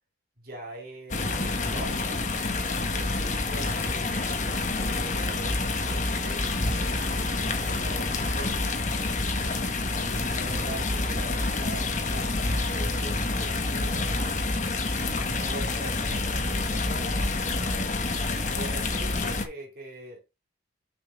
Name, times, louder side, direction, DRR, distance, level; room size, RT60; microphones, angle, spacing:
voice 1, 0.4-2.0 2.5-3.9 4.9-7.0 7.3-8.9 9.4-14.5 15.0-18.0 18.5-20.2, right 1 dB, 50° right, 2.4 m, -43 dB
sound 1, 1.1-19.4, left 2 dB, 40° left, 1.2 m, -28 dB
6.8 x 5.8 x 3.5 m
head